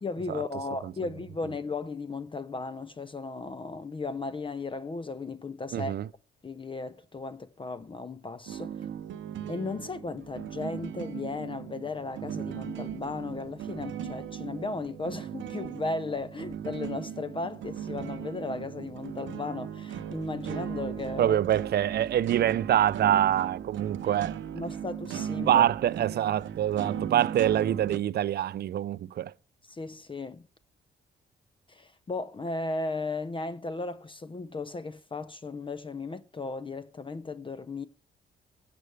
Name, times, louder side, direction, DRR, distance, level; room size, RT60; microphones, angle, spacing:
voice 1, 0.0-5.9 6.4-8.9 9.5-21.4 24.1-24.2 24.5-25.6 29.7-30.4 31.7-37.8, left 3 dB, 25° left, 0.6 m, -36 dB
voice 2, 5.7-6.1 21.2-24.3 25.5-29.3, right 11 dB, 55° right, 0.4 m, -25 dB
sound 1, 8.5-28.0, right 9 dB, 80° right, 0.8 m, -37 dB
15.5 x 7.8 x 3.3 m
cardioid pair, 75°, 20 cm